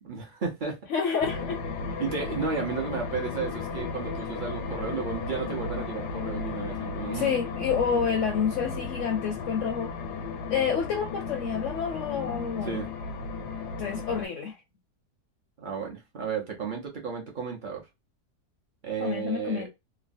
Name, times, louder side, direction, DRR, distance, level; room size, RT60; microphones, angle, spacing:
voice 1, 0.0-0.8 2.0-7.4 12.6-12.9 15.6-17.8 18.8-19.7, right 5 dB, 50° right, 0.6 m, -33 dB
voice 2, 0.9-1.6 7.1-9.9 10.5-12.8 13.8-14.6 19.0-19.7, left 7 dB, 65° left, 0.8 m, -28 dB
sound 1, 1.2-14.3, left 4 dB, 90° left, 1.3 m, -35 dB
3.0 x 2.2 x 2.5 m
omnidirectional pair, 1.7 m